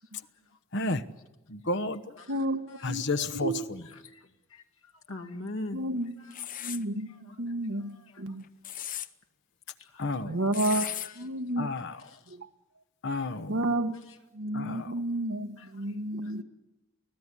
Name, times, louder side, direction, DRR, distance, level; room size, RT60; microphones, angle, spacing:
voice 1, 0.7-1.0 1.5-2.2 2.8-3.8 10.0-10.4 11.6-12.0 13.0-13.6 14.5-14.9, left 2 dB, 60° left, 1.1 m, -31 dB
voice 2, 2.3-3.7 5.7-8.4 10.2-10.9 11.1-11.7 12.3-12.5 13.5-13.9 14.3-16.4, right 1 dB, 70° right, 1.4 m, -31 dB
voice 3, 4.0-5.8 6.4-6.5 7.1-7.4 7.8-8.2 8.6-8.7 9.8-10.0 10.8-11.2 11.9-12.4 15.6-15.7 16.2-16.4, left 1 dB, 85° left, 2.2 m, -43 dB
sound 1, 6.3-6.8 8.4-9.1 10.5-11.1, left 12 dB, 40° left, 0.8 m, -35 dB
25.0 x 16.0 x 9.7 m
head